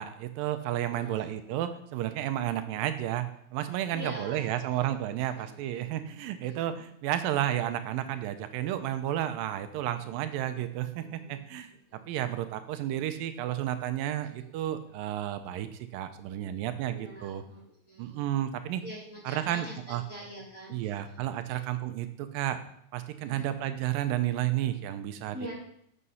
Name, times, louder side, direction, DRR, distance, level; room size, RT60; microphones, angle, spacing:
voice 1, 0.0-17.4 18.0-18.8 19.3-20.0 20.7-22.6 22.9-25.4, right 12 dB, 85° right, 10 dB, 2.4 m, -32 dB
voice 2, 0.9-1.3 3.9-4.9 5.4-6.9 10.9-11.6 11.9-12.1 14.4-14.7 16.9-18.3 18.8-21.2 21.5-21.6 23.2-23.6 25.3-25.5, equal, 25° left, -4 dB, 2.1 m, -46 dB
8.4 x 6.9 x 5.5 m, 0.70 s
omnidirectional pair, 4.0 m